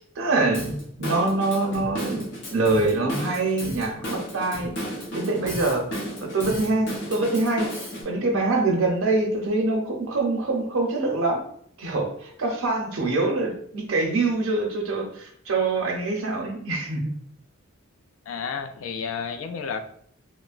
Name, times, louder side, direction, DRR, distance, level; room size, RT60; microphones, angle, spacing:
voice 1, 0.0-2.2 2.5-4.7 5.1-5.9 6.2-7.7 8.0-11.4 11.8-17.1, right 2 dB, 75° right, 1 dB, 0.6 m, -24 dB
Drum kit / Drum, 0.5-8.0, equal, 55° left, 0.8 m, -34 dB
voice 2, 18.3-19.8, left 6 dB, 70° left, 6 dB, 0.3 m, -31 dB
2.9 x 2.0 x 2.4 m, 0.63 s
head